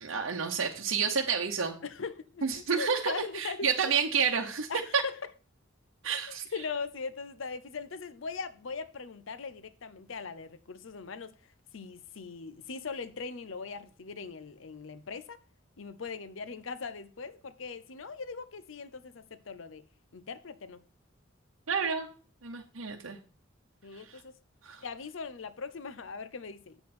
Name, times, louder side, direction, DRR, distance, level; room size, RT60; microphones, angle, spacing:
voice 1, 0.0-1.8 2.4-5.0 6.0-6.4 21.7-22.1 22.4-23.2 23.9-24.2 24.6-24.8, right 6 dB, 85° right, 0.9 m, -30 dB
voice 2, 1.8-3.7 4.7-5.3 6.3-11.4 11.7-15.4 15.8-19.8 20.1-20.8 23.8-24.3 24.8-26.8, left 5 dB, 75° left, 0.7 m, -40 dB
7.9 x 7.6 x 4.2 m
head